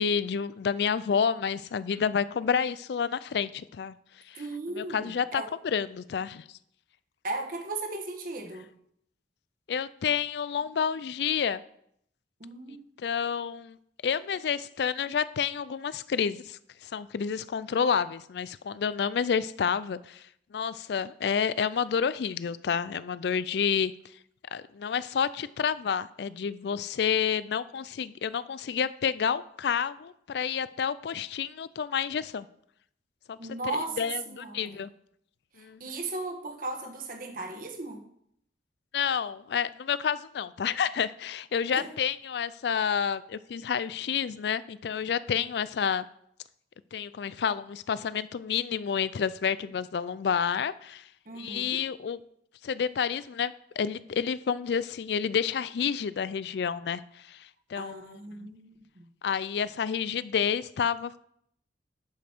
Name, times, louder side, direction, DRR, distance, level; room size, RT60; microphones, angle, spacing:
voice 1, 0.0-4.0 4.3-4.4 4.7-6.4 9.7-11.6 13.0-13.8 14.0-20.2 20.5-23.9 24.5-32.5 33.3-34.9 35.6-35.8 38.9-46.1 46.9-51.0 51.4-52.2 52.6-58.0 58.4-58.5 59.2-61.2, left 7 dB, 70° left, 17 dB, 0.4 m, -29 dB
voice 2, 4.4-5.5 7.2-8.7 12.4-12.9 33.4-34.8 35.6-38.0 41.7-41.9 51.3-51.8 57.8-59.1, right 2 dB, 50° right, 4 dB, 1.3 m, -37 dB
11.0 x 5.2 x 4.5 m, 0.71 s
head